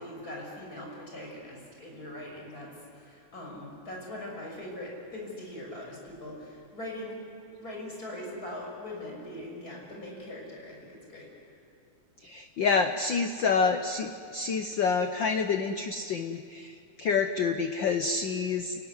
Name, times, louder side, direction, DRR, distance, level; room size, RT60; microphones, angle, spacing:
voice 1, 0.0-7.2 7.6-11.6, left 1 dB, 30° left, -1 dB, 6.6 m, -41 dB
voice 2, 12.2-18.7, left 5 dB, 80° left, 7 dB, 1.0 m, -28 dB
29.0 x 18.0 x 9.7 m, 2.4 s
omnidirectional pair, 3.3 m